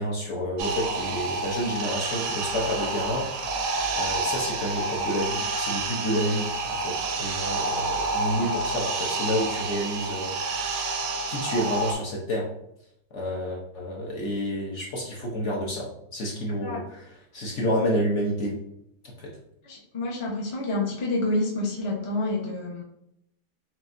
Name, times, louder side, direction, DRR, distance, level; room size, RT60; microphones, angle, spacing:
voice 1, 0.0-10.8 11.3-12.5 13.1-18.5 19.0-19.3, equal, 55° left, -3 dB, 0.9 m, -30 dB
sound 1, 0.6-11.9, right 3 dB, 85° right, 1.3 m, -29 dB
voice 2, 19.6-22.8, left 2 dB, 35° left, -2 dB, 0.5 m, -28 dB
5.9 x 2.4 x 2.5 m, 0.78 s
omnidirectional pair, 1.8 m